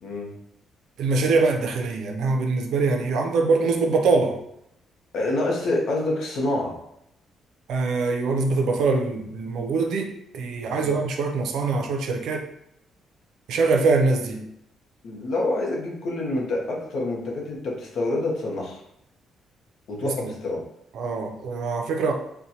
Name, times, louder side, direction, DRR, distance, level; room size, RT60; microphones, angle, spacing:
voice 1, 0.0-0.3 5.1-6.7 10.7-11.0 15.0-18.8 19.9-20.6, left 2 dB, 55° left, -1 dB, 0.8 m, -27 dB
voice 2, 1.0-4.4 7.7-12.5 13.5-14.5 20.0-20.3 20.9-22.1, right 3 dB, 70° right, 3 dB, 0.5 m, -23 dB
4.2 x 2.2 x 2.7 m, 0.79 s
cardioid pair, 170°, 0 cm